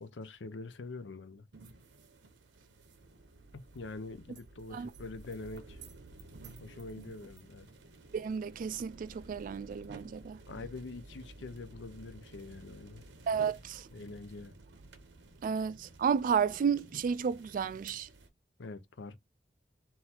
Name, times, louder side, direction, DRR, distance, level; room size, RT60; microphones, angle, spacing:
voice 1, 0.0-1.5 3.7-5.8 6.6-7.7 10.5-13.1 13.9-14.5 18.6-19.2, left 3 dB, 90° left, 0.6 m, -44 dB
sound 1, 1.5-18.3, right 2 dB, 85° right, 0.9 m, -53 dB
voice 2, 8.1-10.4 13.3-13.9 15.4-18.1, right 7 dB, 50° right, 0.3 m, -32 dB
3.8 x 2.7 x 4.3 m
head